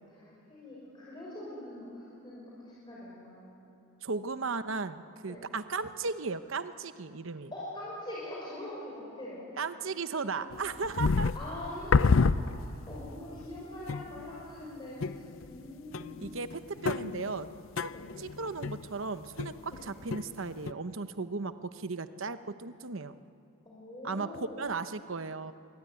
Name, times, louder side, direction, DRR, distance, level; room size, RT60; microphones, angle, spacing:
voice 1, 0.2-3.7 5.2-5.5 7.5-9.5 10.1-10.9 11.3-16.3 17.9-18.1 19.7-19.9 23.7-24.7, left 1 dB, 20° left, -7 dB, 5.6 m, -43 dB
voice 2, 4.0-7.5 9.6-11.3 16.2-17.5 17.8-17.9 18.2-23.1 24.0-24.3 24.6-25.5, right 4 dB, 65° right, 11 dB, 0.9 m, -36 dB
sound 1, 10.5-13.0 13.4-13.5 13.9-14.4 15.0-15.7 15.9-19.8 20.1-20.7, left 4 dB, 60° left, 0.6 m, -29 dB
25.0 x 23.0 x 9.7 m, 2.6 s
head